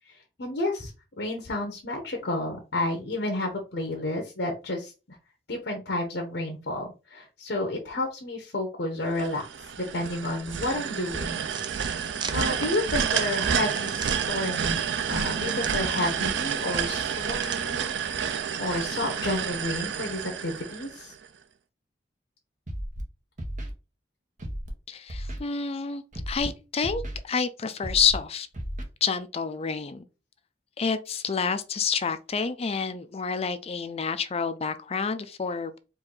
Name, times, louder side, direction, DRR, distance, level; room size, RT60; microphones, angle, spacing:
voice 1, 0.1-0.9 1.2-5.2 5.5-9.5 9.8-11.4 12.3-14.8 15.1-21.1, left 2 dB, 65° left, 1.0 m, -31 dB
sound 1, 9.2-21.3, right 7 dB, 85° right, 0.5 m, -29 dB
sound 2, 11.5-18.3, right 5 dB, 25° right, 0.4 m, -41 dB
Scratching (performance technique), 22.7-23.0 23.4-23.7 24.4-24.7 25.1-25.4 26.1-26.5 26.8-27.2 27.8-28.2 28.5-28.8, equal, 45° right, 1.0 m, -34 dB
voice 2, 24.9-28.5 29.0-30.1 30.8-35.8, left 6 dB, 35° left, 0.5 m, -28 dB
4.5 x 2.6 x 3.8 m
head